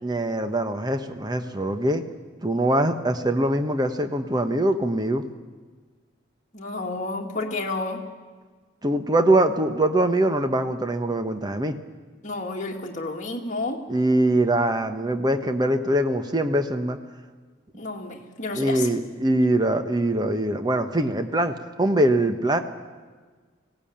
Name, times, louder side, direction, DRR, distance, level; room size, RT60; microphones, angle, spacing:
voice 1, 0.0-2.0 2.4-5.2 8.8-11.8 13.9-17.0 18.5-22.6, right 1 dB, 20° right, 8 dB, 1.1 m, -23 dB
voice 2, 6.5-8.0 12.2-13.8 17.7-18.9, left 2 dB, 40° left, 1 dB, 2.1 m, -31 dB
19.5 x 16.5 x 8.8 m, 1.4 s
head